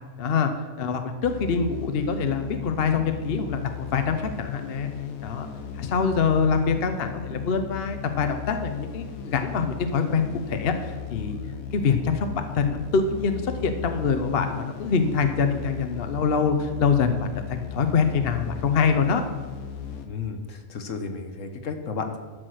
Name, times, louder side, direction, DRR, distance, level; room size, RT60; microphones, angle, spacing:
voice 1, 0.2-0.5 0.8-4.9 5.2-5.5 5.8-11.4 11.7-19.2, left 5 dB, 50° left, 7 dB, 0.9 m, -25 dB
sound 1, 1.2-20.1, left 8 dB, 85° left, 1.3 m, -36 dB
voice 2, 20.0-22.2, left 5 dB, 65° left, 7 dB, 1.4 m, -33 dB
12.0 x 6.2 x 6.3 m, 1.4 s
omnidirectional pair, 1.4 m